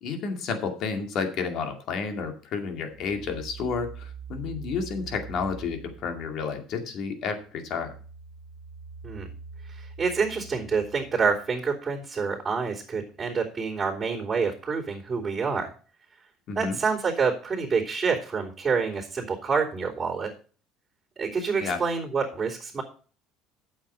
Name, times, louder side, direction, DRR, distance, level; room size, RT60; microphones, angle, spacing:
voice 1, 0.0-7.9 16.5-16.8 21.6-21.8, left 5 dB, 60° left, 5 dB, 2.2 m, -31 dB
sound 1, 2.9-6.7 7.1-11.7, right 6 dB, 65° right, 0.8 m, -44 dB
voice 2, 9.7-15.7 16.5-20.3 21.1-22.8, right 5 dB, 25° right, -8 dB, 3.4 m, -27 dB
8.9 x 7.3 x 5.6 m, 0.40 s
supercardioid pair, 105°, 0 cm